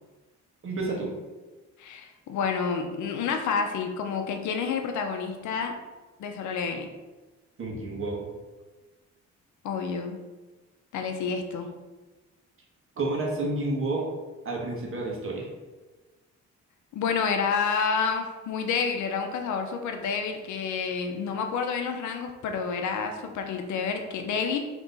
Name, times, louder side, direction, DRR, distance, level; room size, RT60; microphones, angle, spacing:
voice 1, 0.6-1.1 7.6-8.2 13.0-14.1 14.4-15.5, right 2 dB, 45° right, -2 dB, 1.2 m, -30 dB
voice 2, 1.8-5.8 6.2-6.9 9.6-10.2 10.9-11.7 16.9-24.6, left 5 dB, 75° left, 5 dB, 0.6 m, -29 dB
3.4 x 3.0 x 3.9 m, 1.2 s
cardioid pair, 90°, 30 cm